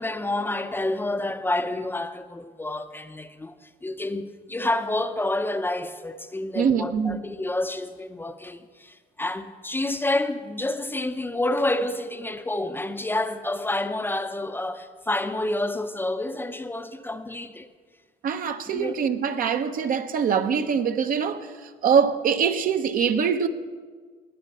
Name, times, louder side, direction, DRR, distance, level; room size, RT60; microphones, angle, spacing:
voice 1, 0.0-3.5 3.8-17.7 18.7-19.1, left 2 dB, 10° left, 0.6 m, -29 dB
voice 2, 6.5-7.2 18.2-21.5 21.8-23.5, right 7 dB, 55° right, 0.9 m, -23 dB
19.0 x 8.3 x 5.5 m
cardioid pair, 110°, 17 cm